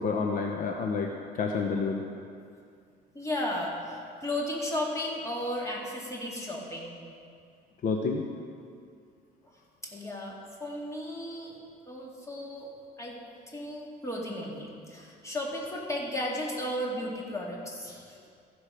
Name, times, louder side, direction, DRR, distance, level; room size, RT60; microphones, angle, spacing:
voice 1, 0.0-2.0 7.8-8.2, left 4 dB, 55° left, 2 dB, 0.8 m, -29 dB
voice 2, 3.1-7.0 9.4-9.5 9.9-11.6 11.9-12.7 13.0-18.2, left 1 dB, 15° left, -2 dB, 2.2 m, -34 dB
15.0 x 6.1 x 5.0 m, 2.3 s
cardioid pair, 110°, 17 cm